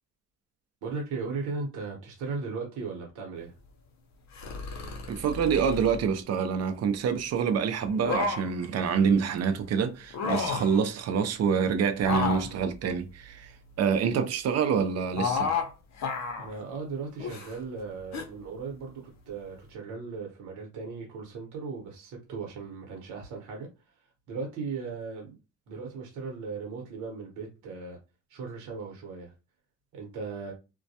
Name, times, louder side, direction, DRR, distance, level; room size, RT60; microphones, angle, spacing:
voice 1, 0.8-3.5 16.4-23.7 24.3-25.4 25.7-28.0 28.3-29.3 29.9-30.5, right 4 dB, 85° right, 0.9 m, -37 dB
sound 1, 4.4-6.0 7.8-8.7 10.0-10.8 12.0-13.8 15.2-15.7 16.0-16.5 17.2-17.6 18.1-18.3, left 4 dB, 65° left, 0.6 m, -32 dB
voice 2, 5.1-13.5 13.8-15.5, right 6 dB, 55° right, 0.5 m, -26 dB
2.2 x 2.1 x 2.7 m
cardioid pair, 90°, 30 cm